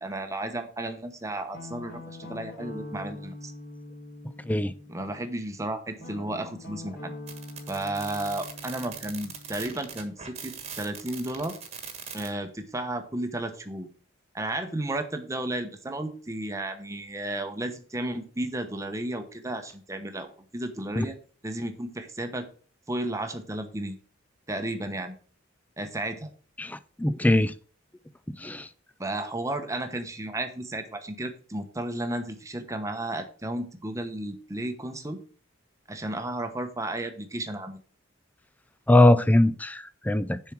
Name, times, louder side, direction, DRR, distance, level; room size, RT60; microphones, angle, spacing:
voice 1, 0.0-3.5 4.9-7.1 7.7-11.5 12.1-13.9 14.3-21.2 21.4-22.5 22.9-24.0 24.5-25.2 25.8-26.3 29.0-35.2 35.9-37.8, right 1 dB, 15° right, 6 dB, 0.9 m, -33 dB
Guitar, 1.5-5.3 6.0-10.7, left 2 dB, 50° left, 1.8 m, -44 dB
sound 1, 7.3-12.3, right 7 dB, 30° right, 1.4 m, -41 dB
voice 2, 26.6-27.5 28.3-28.7 38.9-40.4, left 1 dB, 10° left, 15 dB, 0.4 m, -21 dB
7.0 x 4.5 x 6.1 m, 0.42 s
head